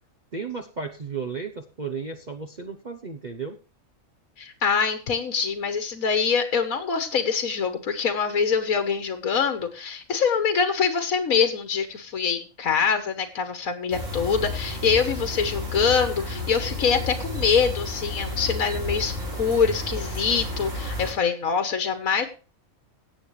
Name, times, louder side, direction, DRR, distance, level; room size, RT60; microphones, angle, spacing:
voice 1, 0.3-3.6, right 5 dB, 35° right, 5 dB, 0.9 m, -34 dB
voice 2, 4.4-19.1 19.4-22.3, left 6 dB, 75° left, 8 dB, 1.6 m, -24 dB
sound 1, 13.9-21.1, left 2 dB, 60° right, 5.0 m, -32 dB
17.0 x 7.6 x 3.2 m, 0.35 s
omnidirectional pair, 1.4 m